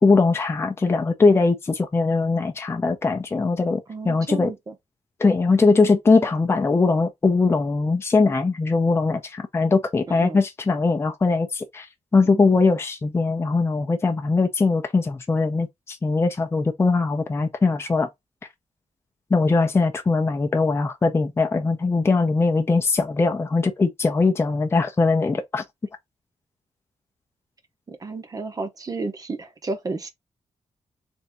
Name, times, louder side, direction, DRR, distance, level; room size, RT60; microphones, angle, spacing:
voice 1, 0.0-4.5 5.2-11.9 12.1-18.1 19.3-25.6, left 3 dB, 20° left, 0.6 m, -21 dB
voice 2, 3.9-4.7 10.1-10.4 12.3-12.5 27.9-30.1, right 3 dB, 30° right, 0.8 m, -32 dB
3.5 x 2.7 x 4.0 m
wide cardioid pair, 160°, 12 cm